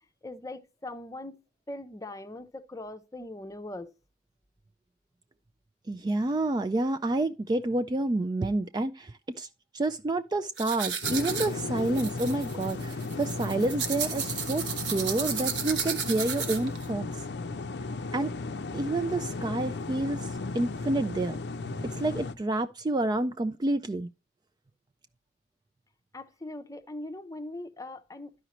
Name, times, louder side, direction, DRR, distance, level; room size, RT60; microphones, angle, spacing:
voice 1, 0.2-1.4 1.7-3.9 26.1-28.5, left 2 dB, 20° left, 0.6 m, -41 dB
voice 2, 5.9-9.5 9.7-14.6 14.9-17.2 18.1-18.3 18.7-21.4 22.0-24.1, right 2 dB, 20° right, 0.3 m, -29 dB
sound 1, 10.6-16.8, right 7 dB, 65° right, 1.2 m, -33 dB
sound 2, 11.0-22.3, left 3 dB, 60° left, 0.5 m, -35 dB
12.0 x 4.9 x 3.0 m
head